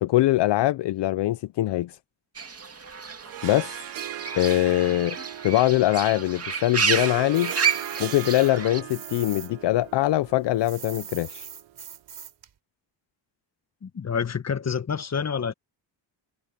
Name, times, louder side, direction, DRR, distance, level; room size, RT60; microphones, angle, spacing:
voice 1, 0.0-2.0 3.4-3.9 4.4-5.2 5.4-7.5 8.0-11.5, left 15 dB, 65° left, 0.7 m, -23 dB
Fowl / Bird, 2.4-8.8, right 6 dB, 30° right, 2.3 m, -30 dB
Harp, 3.2-11.9, right 14 dB, 80° right, 0.8 m, -39 dB
sound 1, 7.3-9.5 9.8-12.5, right 9 dB, 60° right, 7.1 m, -42 dB
voice 2, 13.8-15.5, left 6 dB, 35° left, 1.3 m, -28 dB
cardioid pair, 85°, 45 cm